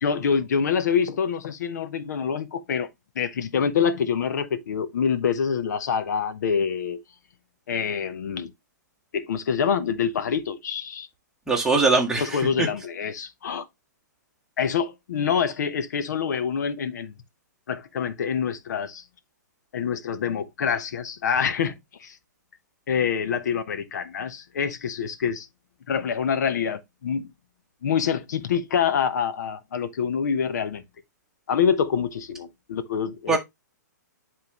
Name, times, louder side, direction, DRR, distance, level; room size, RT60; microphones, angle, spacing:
voice 1, 0.0-2.9 3.2-7.0 7.7-8.5 9.1-11.1 12.2-13.6 14.6-17.1 17.7-19.0 19.7-21.7 22.0-22.2 22.9-25.5 25.9-27.3 27.8-30.8 31.5-33.4, left 7 dB, 65° left, 0.9 m, -26 dB
voice 2, 11.5-12.7 33.3-33.4, right 3 dB, 5° right, 1.6 m, -22 dB
10.5 x 3.8 x 2.9 m
hypercardioid pair, 140°, 10 cm